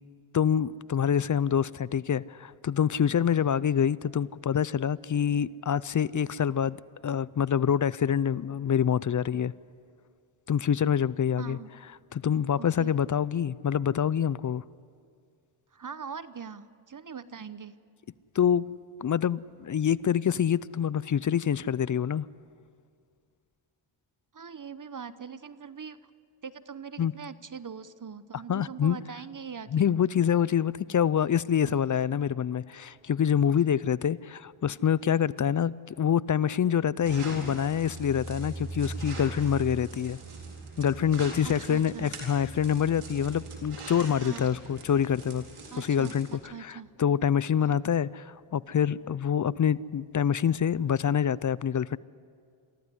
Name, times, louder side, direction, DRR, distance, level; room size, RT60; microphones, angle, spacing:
voice 1, 0.3-9.5 10.5-11.6 12.1-14.6 18.3-18.7 19.0-22.3 27.0-27.1 28.5-29.0 29.7-40.2 40.8-45.4 45.8-46.3 46.6-52.0, left 8 dB, 40° left, 0.5 m, -26 dB
voice 2, 11.4-11.7 12.6-13.0 15.7-17.7 24.3-26.0 26.4-29.8 31.7-31.8 41.4-42.1 44.2-44.5 45.7-46.9 47.6-47.8, right 6 dB, 40° right, 0.9 m, -42 dB
sound 1, 37.0-46.4, right 3 dB, 85° right, 4.2 m, -41 dB
23.5 x 14.5 x 9.8 m
cardioid pair, 65°, 49 cm